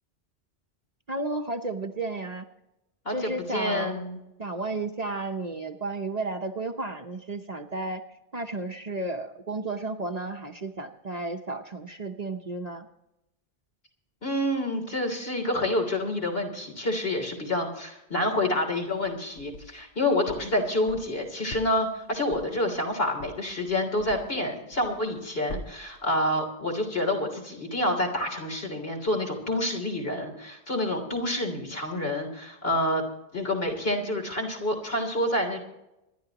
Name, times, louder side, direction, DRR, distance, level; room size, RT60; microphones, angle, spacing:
voice 1, 1.1-2.5 3.1-4.0 4.4-8.0 8.3-12.9, right 2 dB, 40° right, 4 dB, 1.0 m, -33 dB
voice 2, 3.1-4.2 14.2-33.0 33.3-35.6, left 1 dB, 60° left, 2 dB, 3.5 m, -28 dB
sound 1, 18.8-19.9 20.3-24.5 24.7-25.2 25.5-26.0, left 1 dB, 80° left, 1.6 m, -43 dB
25.5 x 11.5 x 2.9 m, 0.89 s
omnidirectional pair, 1.2 m